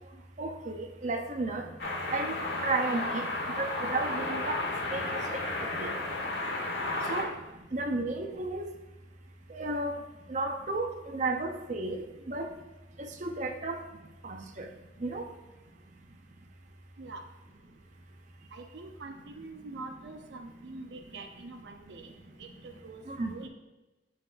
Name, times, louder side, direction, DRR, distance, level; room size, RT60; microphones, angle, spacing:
voice 1, 0.4-1.7 2.1-2.3 2.6-3.2 3.6-4.6 4.9-5.2 5.8-5.9 7.1-7.3 7.7-8.7 9.5-10.0 10.3-12.5 13.0-13.8 14.2-14.6 15.0-15.3 23.1-23.3, right 2 dB, 45° right, 3 dB, 0.7 m, -33 dB
sound 1, 1.8-7.2, left 2 dB, 70° left, 1.3 m, -33 dB
voice 2, 18.5-22.1 22.4-23.5, right 3 dB, 80° right, 5 dB, 0.6 m, -45 dB
12.0 x 4.1 x 2.5 m, 1.1 s
head